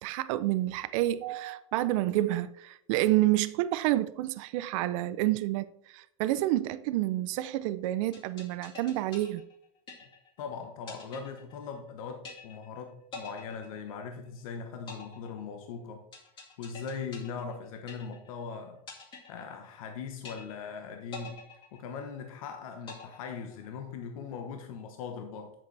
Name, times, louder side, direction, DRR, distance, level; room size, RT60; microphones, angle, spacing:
voice 1, 0.0-9.4, right 15 dB, 65° right, 0.4 m, -29 dB
sound 1, 8.1-10.4 10.9-11.9 12.2-12.8 13.1-14.4 14.9-18.4 18.9-19.9 20.2-20.8 21.1-22.4 22.9-23.9, left 4 dB, 30° left, 2.1 m, -47 dB
voice 2, 10.4-16.0 16.6-18.8 19.3-21.4 21.7-25.5, left 5 dB, 85° left, 1.1 m, -40 dB
7.9 x 7.2 x 3.3 m
supercardioid pair, 150°, 17 cm